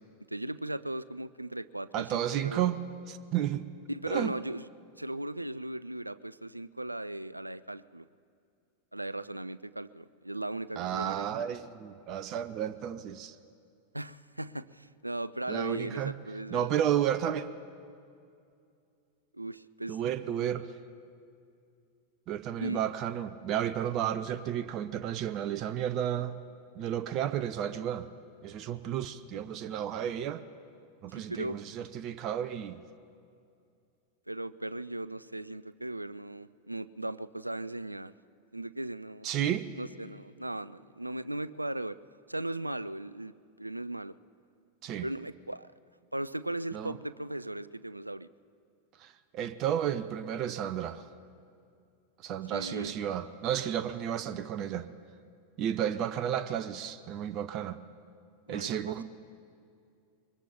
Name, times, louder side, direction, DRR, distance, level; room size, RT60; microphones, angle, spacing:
voice 1, 0.3-2.7 3.9-4.7 5.0-8.1 8.9-11.3 13.9-16.7 19.3-20.0 22.6-22.8 31.1-31.6 34.3-38.1 38.5-39.3 39.8-42.0 42.3-44.2 45.0-45.7 46.1-48.3 52.5-52.9 58.5-59.0, right 1 dB, 85° right, 17 dB, 0.3 m, -37 dB
voice 2, 1.9-2.8 3.1-3.6 4.1-4.3 10.8-13.3 15.5-16.1 16.5-17.5 19.9-20.7 22.3-26.4 26.8-28.1 28.4-30.4 31.0-32.8 39.2-39.7 44.8-45.1 46.7-46.9 49.0-51.1 52.2-54.9 55.6-57.8 58.5-59.0, right 10 dB, 35° right, 13 dB, 0.5 m, -32 dB
23.5 x 20.5 x 3.0 m, 2.4 s
figure-of-eight pair, 90°, 0 cm